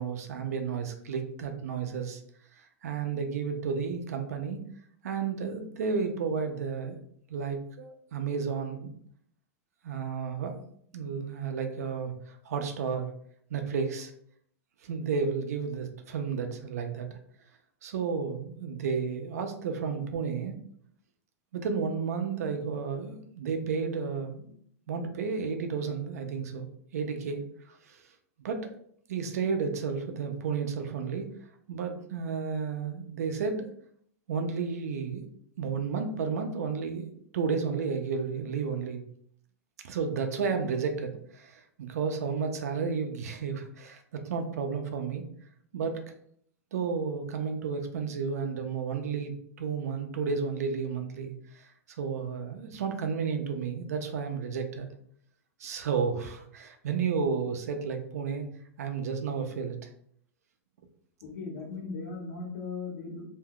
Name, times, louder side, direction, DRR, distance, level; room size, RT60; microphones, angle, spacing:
voice 1, 0.0-2.2 2.6-4.6 5.0-7.0 7.3-8.9 9.8-13.1 13.5-14.1 14.8-17.1 17.8-20.6 21.5-24.6 24.9-26.7 26.9-28.0 28.4-28.7 29.1-31.3 31.7-33.7 34.3-35.3 35.6-39.0 39.8-45.3 45.7-46.0 46.7-51.6 52.0-54.9 55.6-58.5 58.8-59.8, right 5 dB, 90° right, 6 dB, 0.6 m, -32 dB
voice 2, 61.2-63.3, left 4 dB, 70° left, 0 dB, 1.1 m, -38 dB
2.7 x 2.3 x 3.6 m, 0.65 s
supercardioid pair, 180°, 8 cm